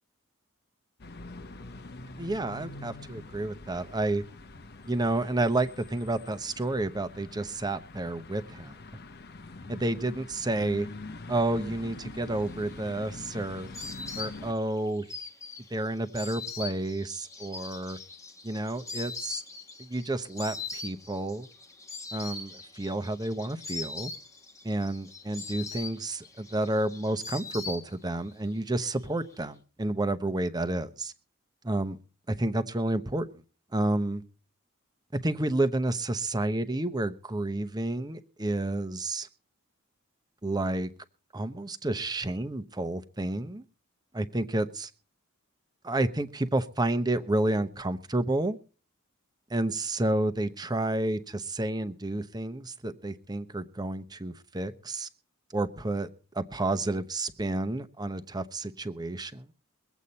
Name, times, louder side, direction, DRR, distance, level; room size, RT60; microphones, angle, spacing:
sound 1, 1.0-14.5, left 2 dB, 50° left, 0.9 m, -44 dB
voice 1, 2.1-4.2 4.9-8.8 9.7-10.9 11.3-13.7 14.2-15.1 15.7-18.0 18.4-19.4 19.8-21.5 22.1-24.1 24.6-31.1 31.6-32.0 32.3-33.4 33.7-34.2 35.1-39.3 40.4-40.9 41.3-43.6 44.1-44.9 45.8-48.6 49.5-55.1 55.5-56.1 56.3-59.5, right 2 dB, 20° right, 0.9 m, -30 dB
Insect, 12.6-28.3 28.6-29.4, left 4 dB, 15° left, 1.2 m, -41 dB
23.0 x 8.3 x 4.1 m
head